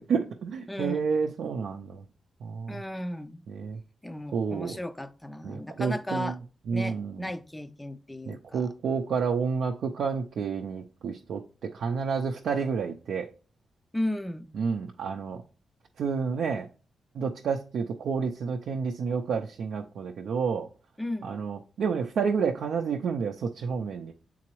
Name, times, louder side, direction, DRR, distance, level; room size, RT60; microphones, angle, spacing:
voice 1, 0.0-2.0 2.4-2.8 3.5-3.8 4.3-4.8 5.4-6.3 6.7-7.3 8.3-13.3 14.5-15.4 16.0-16.7 17.1-20.7 21.2-24.1, right 5 dB, 80° right, 0.5 m, -30 dB
voice 2, 0.7-1.1 2.7-3.4 4.0-6.4 6.7-8.7 13.9-14.5 21.0-21.3, left 1 dB, 10° left, 0.4 m, -35 dB
8.3 x 3.8 x 3.0 m
wide cardioid pair, 125°, 0 cm